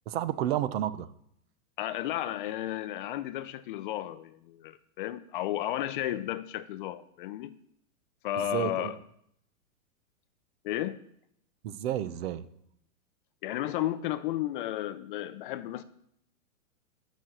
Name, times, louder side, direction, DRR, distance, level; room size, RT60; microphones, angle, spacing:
voice 1, 0.1-1.1 8.5-8.9 11.6-12.4, right 11 dB, 45° right, 0.8 m, -31 dB
voice 2, 1.8-7.5 8.2-9.0 10.6-11.0 13.4-15.8, left 13 dB, 40° left, 0.6 m, -33 dB
11.0 x 6.2 x 7.7 m
supercardioid pair, 155°, 42 cm